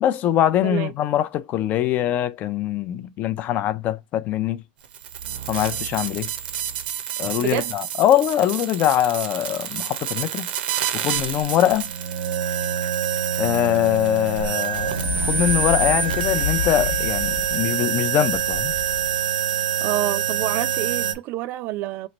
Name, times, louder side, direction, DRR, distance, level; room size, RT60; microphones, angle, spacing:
voice 1, 0.0-4.6 5.5-6.3 7.2-10.5 10.9-11.9 13.4-18.7, left 11 dB, 35° left, 0.4 m, -22 dB
sound 1, 4.8-21.1, right 8 dB, 75° right, 0.7 m, -26 dB
voice 2, 7.4-7.7 19.8-22.1, right 15 dB, 40° right, 0.3 m, -27 dB
sound 2, 14.7-17.8 18.3-19.2, left 7 dB, 75° left, 0.9 m, -30 dB
3.1 x 2.4 x 4.1 m
supercardioid pair, 140°, 5 cm